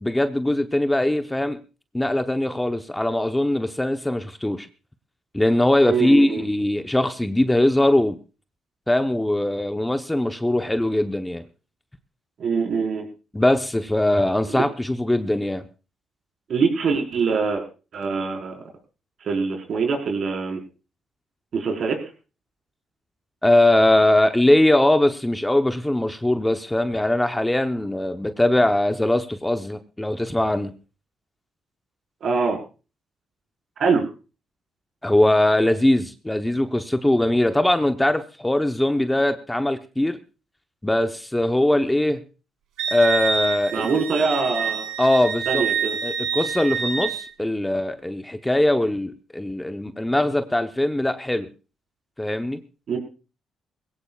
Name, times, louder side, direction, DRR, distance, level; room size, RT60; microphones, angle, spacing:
voice 1, 0.0-1.6 1.9-4.7 5.3-8.2 8.9-11.4 13.3-15.6 23.4-30.7 35.0-40.2 40.8-42.2 42.9-43.9 45.0-45.6 46.0-51.5 52.2-52.6, left 1 dB, 10° left, 8 dB, 0.9 m, -21 dB
voice 2, 5.9-6.4 12.4-13.1 14.5-14.6 16.5-17.6 17.9-18.5 19.2-20.6 21.5-22.0 32.2-32.6 33.8-34.0 43.7-44.9 45.5-46.0 52.9-53.0, right 5 dB, 60° right, 3 dB, 4.7 m, -23 dB
Wind instrument woodwind instrument, 42.8-47.3, right 7 dB, 85° right, 3.1 m, -27 dB
21.0 x 16.5 x 2.4 m, 0.33 s
cardioid pair, 90°, 0 cm